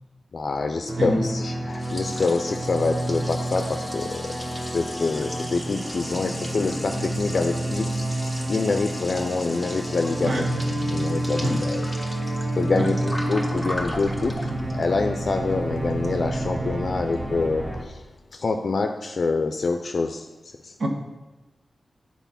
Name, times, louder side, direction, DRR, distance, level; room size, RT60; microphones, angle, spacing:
voice 1, 0.3-4.2 4.7-10.3 10.9-11.8 12.6-18.0 18.3-20.3 20.6-20.7, left 3 dB, 65° left, 5 dB, 0.4 m, -26 dB
sound 1, 0.9-17.8, right 1 dB, 20° right, 0.9 m, -29 dB
Liquid, 1.3-16.5, equal, ahead, 1.2 m, -38 dB
voice 2, 10.2-10.5 11.4-11.7 12.7-13.0 20.8-20.9, right 1 dB, 80° right, 2 dB, 1.2 m, -26 dB
8.2 x 4.2 x 5.7 m, 1.1 s
wide cardioid pair, 70°, 0 cm